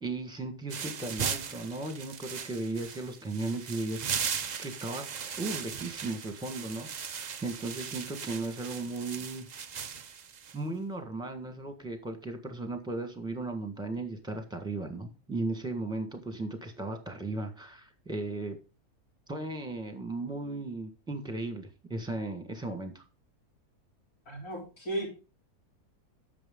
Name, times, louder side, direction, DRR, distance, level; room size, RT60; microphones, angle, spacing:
voice 1, 0.0-4.1 4.6-5.1 5.4-9.5 10.5-18.6 19.3-23.0, right 2 dB, 5° right, 6 dB, 1.4 m, -36 dB
sound 1, 0.7-10.6, right 7 dB, 85° right, 0.3 m, -38 dB
voice 2, 24.3-25.1, right 1 dB, 70° left, -3 dB, 4.5 m, -35 dB
10.0 x 7.0 x 3.7 m, 0.31 s
omnidirectional pair, 1.6 m